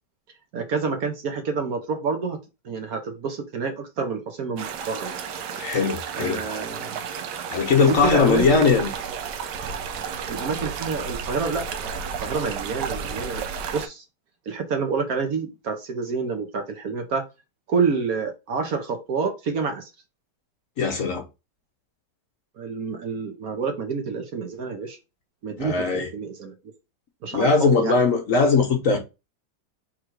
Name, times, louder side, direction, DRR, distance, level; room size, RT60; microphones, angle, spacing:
voice 1, 0.5-2.4 2.6-5.1 6.1-7.0 7.8-8.8 10.3-13.4 13.7-14.0 14.5-17.2 17.7-19.9 22.6-25.0 25.4-26.5 27.2-28.0, right 5 dB, 60° right, 1.2 m, -28 dB
sound 1, 4.6-13.9, right 6 dB, 75° right, 1.3 m, -32 dB
voice 2, 5.5-6.4 7.5-8.9 20.8-21.2 25.6-26.1 27.3-29.0, left 4 dB, 55° left, 1.1 m, -20 dB
3.7 x 3.2 x 4.5 m
omnidirectional pair, 1.9 m